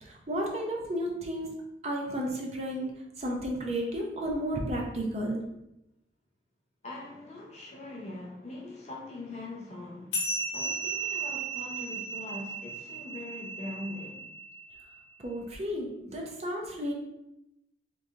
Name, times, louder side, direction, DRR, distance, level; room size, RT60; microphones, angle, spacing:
voice 1, 0.0-1.5 1.8-2.9 3.2-5.4 15.2-16.9, equal, 35° right, 0 dB, 0.5 m, -32 dB
voice 2, 6.8-10.3 10.5-14.2, left 2 dB, 35° left, -2 dB, 0.7 m, -42 dB
sound 1, 10.1-15.0, right 3 dB, 75° left, 1.0 m, -35 dB
3.1 x 2.6 x 3.5 m, 0.86 s
head